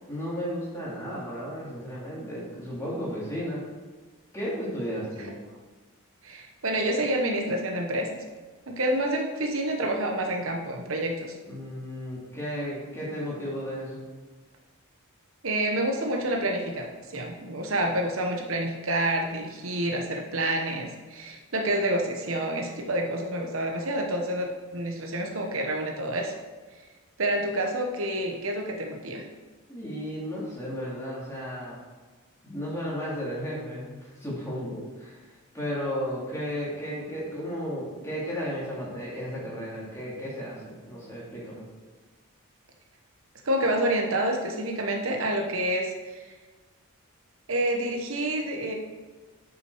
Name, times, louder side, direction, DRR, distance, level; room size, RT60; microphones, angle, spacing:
voice 1, 0.1-3.6 4.3-5.3 11.4-14.1 29.7-31.8 32.4-35.2 35.5-41.7, equal, 15° left, -7 dB, 2.8 m, -34 dB
voice 2, 6.2-8.1 8.7-11.3 15.4-26.3 27.2-29.3 43.4-46.3 47.5-48.7, right 1 dB, 65° right, 2 dB, 1.1 m, -28 dB
9.3 x 6.2 x 4.7 m, 1.3 s
head